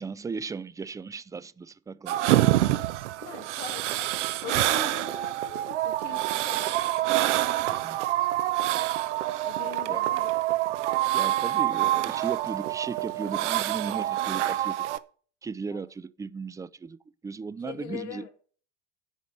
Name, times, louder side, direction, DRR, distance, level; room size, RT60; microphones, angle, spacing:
voice 1, 0.0-2.2 7.7-8.0 9.9-10.0 11.1-14.9 15.4-18.3, right 5 dB, 10° right, 0.4 m, -36 dB
sound 1, 2.1-15.0, right 15 dB, 75° right, 0.7 m, -26 dB
voice 2, 3.2-6.7 9.5-10.6 11.5-11.6 15.7-15.9 17.6-18.3, left 10 dB, 75° left, 2.3 m, -42 dB
10.0 x 4.9 x 7.6 m
hypercardioid pair, 75°, 36 cm